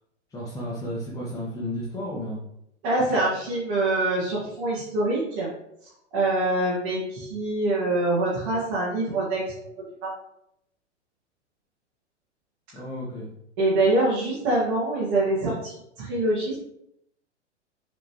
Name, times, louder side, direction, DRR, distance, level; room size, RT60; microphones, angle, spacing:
voice 1, 0.3-2.4 12.7-13.3, equal, 10° left, -6 dB, 1.3 m, -33 dB
voice 2, 2.8-5.5 6.1-10.1 13.6-16.6, right 2 dB, 40° right, -7 dB, 2.2 m, -25 dB
7.3 x 4.2 x 3.2 m, 0.78 s
figure-of-eight pair, 100°, 36 cm